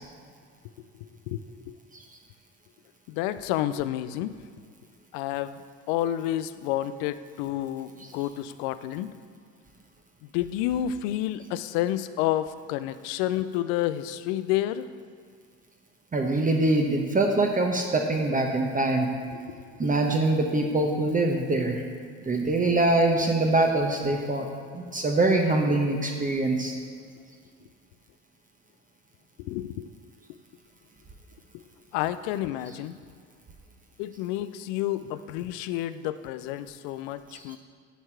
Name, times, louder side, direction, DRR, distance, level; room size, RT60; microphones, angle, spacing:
voice 1, 1.0-1.4 1.7-1.8 3.1-4.3 5.1-5.6 5.9-9.1 10.3-14.9 19.3-19.6 29.4-29.9 31.5-31.6 31.9-33.0 34.0-37.6, left 12 dB, 70° left, 13 dB, 0.5 m, -30 dB
voice 2, 16.1-19.1 19.8-21.8 22.3-24.5 24.7-26.7 37.3-37.4, right 2 dB, 25° right, 2 dB, 0.9 m, -24 dB
9.9 x 4.5 x 4.5 m, 2.1 s
hypercardioid pair, 65°, 35 cm